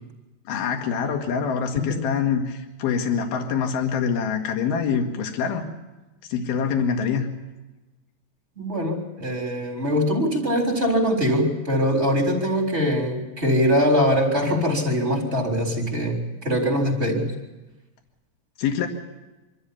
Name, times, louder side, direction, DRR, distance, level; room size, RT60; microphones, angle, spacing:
voice 1, 0.5-5.7 6.3-7.3 18.6-18.9, left 6 dB, 65° left, 4 dB, 3.6 m, -25 dB
voice 2, 8.6-17.3, equal, 15° right, 0 dB, 3.5 m, -22 dB
25.0 x 13.5 x 8.5 m, 1.1 s
omnidirectional pair, 5.0 m